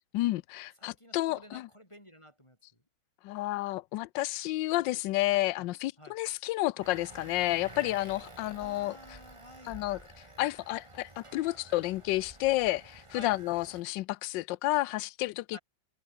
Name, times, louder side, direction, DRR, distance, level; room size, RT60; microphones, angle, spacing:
voice 1, 0.1-1.7 3.2-9.0 9.6-10.0 10.4-15.6, left 17 dB, 75° left, 1.2 m, -31 dB
voice 2, 0.8-2.6 5.5-5.7 6.0-6.2 8.6-9.8 13.1-13.4 15.5-15.6, equal, 15° left, 7.6 m, -51 dB
sound 1, 6.8-13.8, right 2 dB, 15° right, 1.8 m, -50 dB
omnidirectional pair, 2.2 m